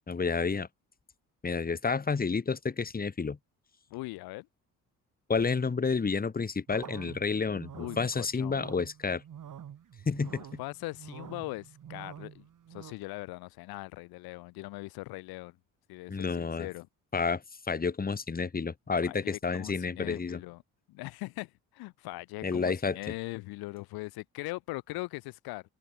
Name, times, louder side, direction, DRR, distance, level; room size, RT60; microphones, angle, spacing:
voice 1, 0.1-0.7 1.4-3.4 5.3-9.2 10.1-10.4 16.1-16.7 17.1-17.4 17.7-20.4 22.4-23.0, left 5 dB, 25° left, 1.4 m, -30 dB
voice 2, 3.9-4.5 7.7-8.6 10.6-12.4 12.7-15.5 15.9-16.9 19.0-20.6 20.9-25.6, left 21 dB, 80° left, 0.9 m, -40 dB
sound 1, 6.7-12.9, right 9 dB, 55° right, 4.3 m, -47 dB
supercardioid pair, 65°, 37 cm